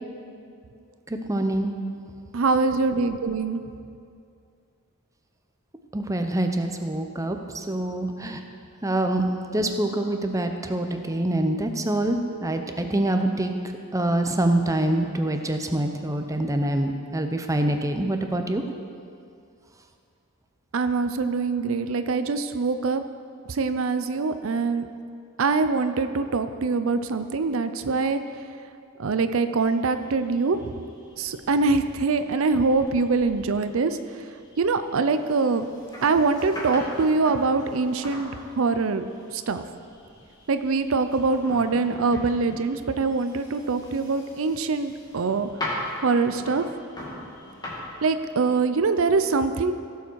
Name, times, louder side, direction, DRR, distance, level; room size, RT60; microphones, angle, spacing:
voice 1, 1.1-1.7 5.9-8.4 8.8-9.3 9.5-13.5 13.9-18.6, right 1 dB, 15° right, 5 dB, 0.7 m, -25 dB
voice 2, 2.3-3.6 20.7-23.0 23.5-24.9 25.4-28.2 29.0-30.6 31.2-34.0 34.6-35.7 36.0-38.3 38.6-39.1 39.3-39.6 40.5-45.5 46.0-46.7 48.0-49.7, right 4 dB, 65° right, 10 dB, 0.5 m, -23 dB
sound 1, 29.7-48.7, left 1 dB, 20° left, 2.2 m, -41 dB
16.5 x 7.1 x 4.6 m, 2.4 s
head